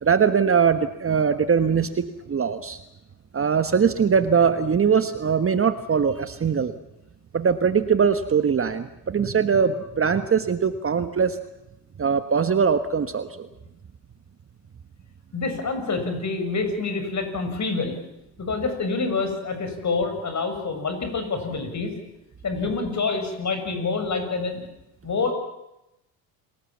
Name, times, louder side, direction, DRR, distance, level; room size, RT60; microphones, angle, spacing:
voice 1, 0.0-2.8 3.3-6.8 7.3-11.4 12.0-13.5, right 6 dB, 25° right, 10 dB, 1.4 m, -21 dB
voice 2, 15.3-18.0 18.4-21.9 22.4-24.7 25.0-25.3, left 4 dB, 35° left, 7 dB, 6.9 m, -27 dB
28.5 x 19.0 x 7.4 m, 0.90 s
hypercardioid pair, 75°, 48 cm